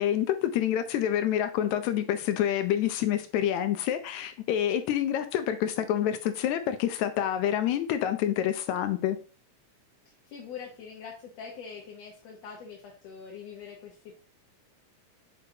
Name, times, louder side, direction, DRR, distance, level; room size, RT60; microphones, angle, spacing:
voice 1, 0.0-9.2, left 10 dB, 80° left, 1.7 m, -27 dB
voice 2, 10.3-14.1, left 6 dB, 65° left, 2.0 m, -43 dB
6.8 x 5.4 x 2.8 m
omnidirectional pair, 3.6 m